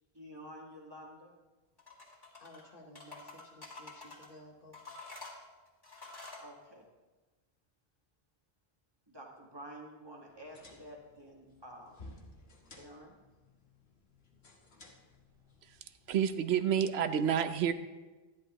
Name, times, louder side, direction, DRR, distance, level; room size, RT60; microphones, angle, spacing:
voice 1, 0.1-1.4 6.4-6.9 9.1-12.0 12.7-13.2, equal, 25° right, -1 dB, 1.7 m, -50 dB
sound 1, 1.8-2.6 2.9-4.3 4.7-6.5, left 3 dB, 20° left, 2.2 m, -49 dB
voice 2, 2.4-4.8, left 1 dB, 55° left, -1 dB, 1.5 m, -55 dB
sound 2, 10.3-16.3, left 2 dB, 75° left, 1.6 m, -57 dB
voice 3, 16.1-17.7, right 8 dB, 85° right, 11 dB, 0.9 m, -29 dB
12.5 x 10.5 x 3.0 m, 1.2 s
omnidirectional pair, 1.0 m